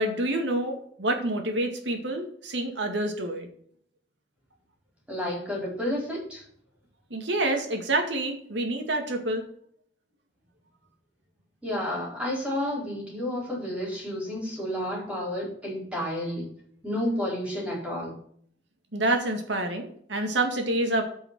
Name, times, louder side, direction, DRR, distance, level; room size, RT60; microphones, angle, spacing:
voice 1, 0.0-3.5 7.1-9.5 18.9-21.0, right 1 dB, 80° right, 4 dB, 2.1 m, -27 dB
voice 2, 5.1-6.4 11.6-16.5 16.8-18.1, left 1 dB, 5° right, -4 dB, 4.4 m, -31 dB
9.0 x 5.5 x 6.1 m, 0.62 s
head